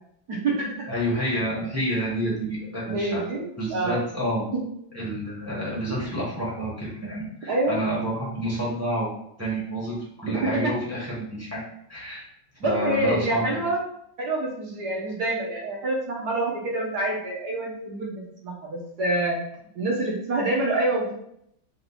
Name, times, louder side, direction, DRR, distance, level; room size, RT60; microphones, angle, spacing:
voice 1, 0.3-0.9 2.9-4.0 4.5-4.6 7.5-7.9 10.2-10.7 12.6-13.8 14.2-19.4 19.7-21.1, right 2 dB, 60° right, -2 dB, 1.3 m, -27 dB
voice 2, 0.9-3.2 3.6-4.5 4.9-9.1 9.4-11.6 11.9-12.2 12.6-13.5, equal, 10° right, -7 dB, 0.9 m, -29 dB
4.4 x 2.6 x 4.0 m, 0.73 s
omnidirectional pair, 2.2 m